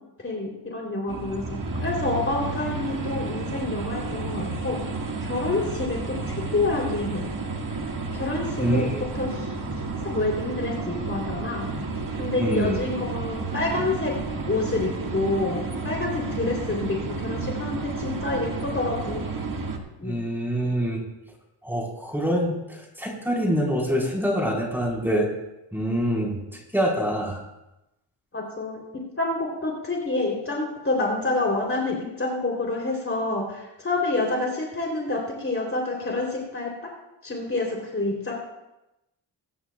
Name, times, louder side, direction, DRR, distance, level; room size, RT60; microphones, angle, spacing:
voice 1, 0.2-4.8 5.2-7.2 8.1-8.9 9.1-9.5 10.0-11.6 12.2-14.1 14.4-19.3 20.0-20.2 28.3-36.7 37.2-38.3, left 2 dB, 30° left, -1 dB, 3.3 m, -28 dB
sound 1, 1.1-19.8, right 3 dB, 45° right, 1.8 m, -31 dB
voice 2, 8.6-9.0 12.4-12.8 20.0-21.0 21.6-25.3 25.7-27.4, equal, 5° right, -2 dB, 4.3 m, -25 dB
22.5 x 11.0 x 2.3 m, 0.93 s
cardioid pair, 75°, 46 cm